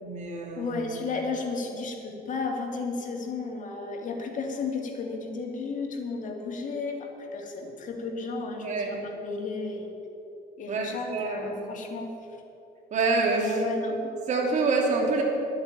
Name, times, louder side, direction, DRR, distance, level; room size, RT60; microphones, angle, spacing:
voice 1, 0.0-0.8 8.6-8.9 10.7-11.5 12.9-13.6 14.3-15.2, right 3 dB, 45° right, -1 dB, 3.0 m, -26 dB
voice 2, 0.6-9.9 10.6-12.1 13.4-14.1, left 3 dB, 50° left, 2 dB, 2.2 m, -33 dB
11.0 x 8.1 x 8.8 m, 2.9 s
cardioid pair, 110°, 17 cm